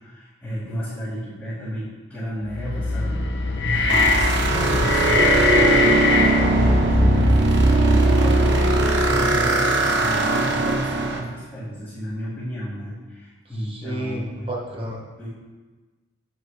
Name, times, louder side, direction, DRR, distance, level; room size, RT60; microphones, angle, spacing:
voice 1, 0.0-6.0 6.5-14.3 15.2-15.3, equal, 5° left, -15 dB, 2.3 m, -32 dB
sound 1, 2.5-7.8, left 3 dB, 75° left, 0.8 m, -22 dB
sound 2, 3.9-11.2, right 2 dB, 70° right, 0.9 m, -19 dB
voice 2, 13.6-15.0, right 1 dB, 30° right, -3 dB, 1.4 m, -31 dB
8.7 x 4.8 x 4.9 m, 1.3 s
head